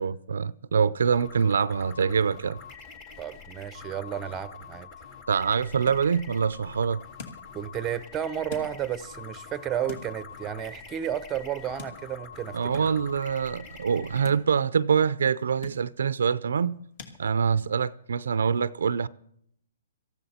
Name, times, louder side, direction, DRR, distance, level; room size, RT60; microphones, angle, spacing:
voice 1, 0.0-2.6 5.3-7.0 12.5-16.8 17.2-19.1, right 6 dB, 80° right, 0.5 m, -25 dB
sound 1, 1.1-14.3, left 6 dB, 30° left, 1.8 m, -46 dB
voice 2, 3.2-4.9 7.5-12.8, right 9 dB, 15° right, 0.7 m, -32 dB
sound 2, 4.8-17.2, left 4 dB, 45° left, 2.4 m, -49 dB
18.0 x 14.5 x 4.3 m
hypercardioid pair, 155°, 0 cm